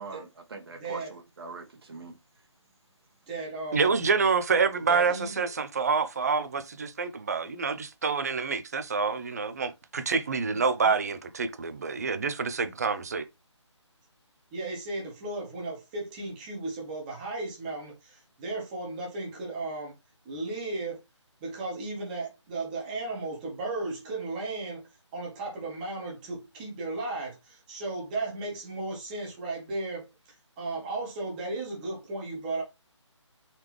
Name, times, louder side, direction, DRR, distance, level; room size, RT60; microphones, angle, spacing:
voice 1, 0.0-2.1, right 4 dB, 50° right, 1.4 m, -42 dB
voice 2, 0.8-1.2 3.3-4.0 4.9-5.5 10.5-10.9 14.5-19.9 20.2-21.0 21.4-24.8 25.1-32.6, right 2 dB, 15° right, 1.2 m, -35 dB
voice 3, 3.7-13.3, right 5 dB, 35° right, 0.5 m, -27 dB
4.0 x 3.3 x 3.1 m
figure-of-eight pair, 160°, 16 cm